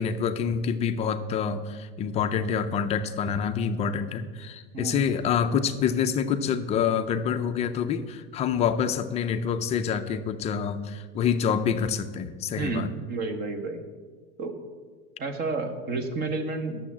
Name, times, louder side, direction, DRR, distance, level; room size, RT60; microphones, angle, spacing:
voice 1, 0.0-12.9, left 7 dB, 20° left, 9 dB, 0.4 m, -27 dB
voice 2, 12.6-13.8 14.4-14.6 15.2-16.8, right 3 dB, 30° right, 7 dB, 1.2 m, -30 dB
9.9 x 7.0 x 7.3 m, 1.5 s
supercardioid pair, 150°, 30 cm